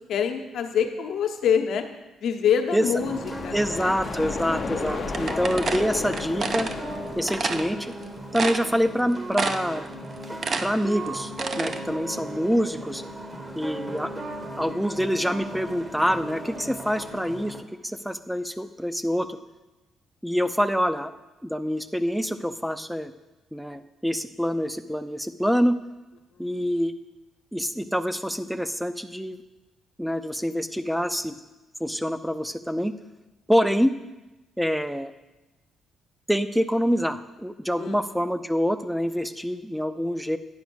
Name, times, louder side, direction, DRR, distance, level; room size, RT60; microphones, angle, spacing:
voice 1, 0.1-1.9 2.2-3.9 11.7-12.0 26.3-26.7 37.7-38.0, left 7 dB, 70° left, 5 dB, 0.9 m, -26 dB
sound 1, 2.8-17.6, right 1 dB, 25° right, 1.0 m, -37 dB
sound 2, 3.0-8.7, left 5 dB, 45° left, 0.6 m, -35 dB
voice 2, 3.5-6.7 7.2-7.9 8.3-9.9 10.6-13.0 13.5-14.1 14.6-17.6 17.8-19.4 20.2-21.1 21.4-23.1 23.5-25.8 26.4-26.9 27.5-29.4 30.0-31.3 31.8-32.9 33.5-33.9 34.6-35.1 36.3-40.4, equal, ahead, 12 dB, 0.5 m, -26 dB
sound 3, 5.1-6.7 7.3-7.6 8.0-8.1 8.3-9.0 9.3-9.8 10.1-11.8, right 4 dB, 45° right, 0.6 m, -28 dB
9.5 x 4.9 x 6.3 m, 1.0 s
cardioid pair, 90°, 0 cm